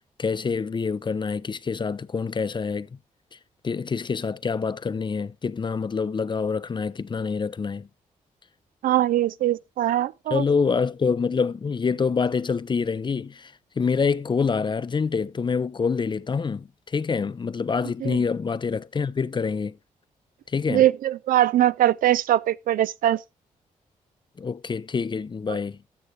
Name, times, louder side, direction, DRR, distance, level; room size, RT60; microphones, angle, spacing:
voice 1, 0.2-3.0 3.6-7.9 10.3-19.8 20.5-20.8 24.4-25.8, left 5 dB, 35° left, 0.5 m, -26 dB
voice 2, 8.8-10.4 18.0-18.2 20.7-23.2, right 13 dB, 75° right, 0.4 m, -21 dB
14.0 x 6.3 x 3.2 m
cardioid pair, 60°, 14 cm